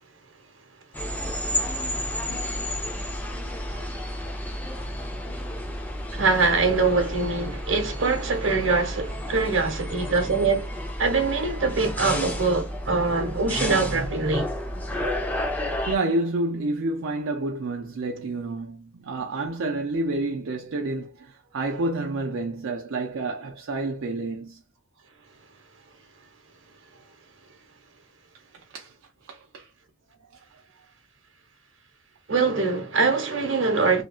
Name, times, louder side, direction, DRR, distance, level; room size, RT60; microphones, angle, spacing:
sound 1, 0.9-16.0, left 1 dB, 10° left, 0.5 m, -31 dB
voice 1, 6.1-10.7 11.0-14.5 32.3-34.0, right 4 dB, 70° right, 1.0 m, -23 dB
voice 2, 15.9-24.6 28.7-28.9 29.3-29.7, right 2 dB, 85° right, 0.5 m, -29 dB
2.8 x 2.5 x 2.3 m
head